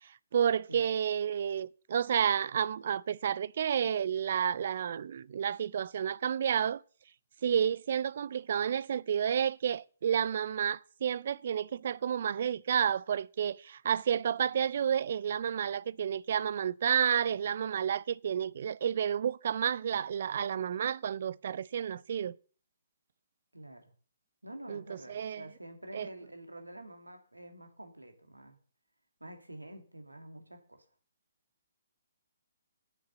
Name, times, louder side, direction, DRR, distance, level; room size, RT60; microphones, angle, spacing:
voice 1, 0.0-6.8 7.4-22.4 24.7-25.5 25.9-26.1, right 8 dB, 50° right, 0.4 m, -31 dB
voice 2, 23.5-23.8 24.4-28.6 29.2-30.8, right 1 dB, 85° right, 2.2 m, -48 dB
8.4 x 6.5 x 7.7 m
figure-of-eight pair, 130°, 0 cm